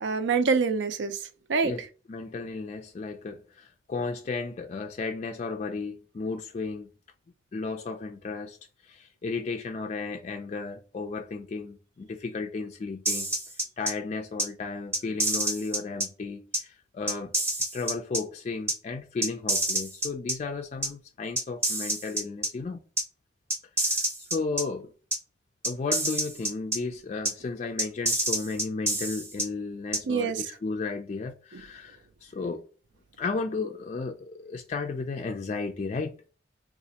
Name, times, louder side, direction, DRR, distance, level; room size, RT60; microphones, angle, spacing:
voice 1, 0.0-1.2 1.5-1.7 30.1-30.4, right 5 dB, 70° right, 0.4 m, -25 dB
voice 2, 1.6-6.9 7.5-8.6 8.8-13.3 13.8-17.3 17.7-22.8 23.8-24.9 25.6-32.6 33.2-36.3, left 4 dB, 35° left, 0.3 m, -34 dB
sound 1, 13.1-13.9 14.4-14.5 14.9-16.1 16.5-16.6 17.1-18.2 18.7-18.8 19.2-20.3 20.8-20.9 21.4-22.5 23.0-23.1 23.5-24.6 25.1-25.2 25.6-26.8 27.3-27.4 27.8-29.5 29.9-30.0, right 1 dB, 15° right, 0.7 m, -27 dB
3.9 x 2.4 x 2.8 m
head